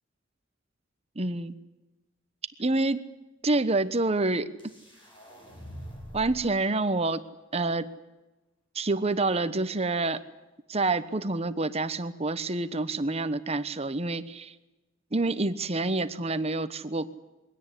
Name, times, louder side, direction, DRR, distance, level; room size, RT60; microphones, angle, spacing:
voice 1, 1.2-1.6 2.6-3.0 3.4-4.5 6.1-7.2 7.5-7.9 8.7-10.2 10.7-14.5 15.1-17.2, right 2 dB, 30° right, 12 dB, 1.1 m, -27 dB
sound 1, 4.6-6.6, equal, 25° left, 7.6 m, -44 dB
23.0 x 17.0 x 10.0 m, 1.1 s
head